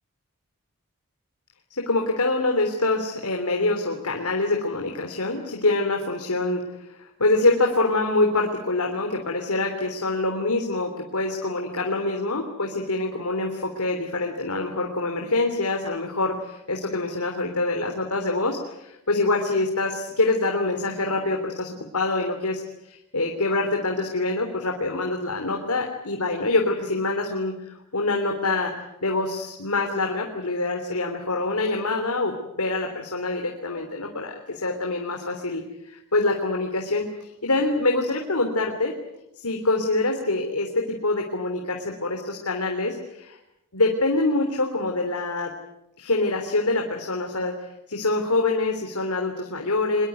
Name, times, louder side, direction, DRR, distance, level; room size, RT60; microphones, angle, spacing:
voice 1, 1.8-28.7 29.0-38.9 39.4-43.4 43.7-45.5 46.0-47.5 47.9-50.1, left 2 dB, 85° left, 2 dB, 3.4 m, -25 dB
24.5 x 22.5 x 9.3 m, 0.85 s
head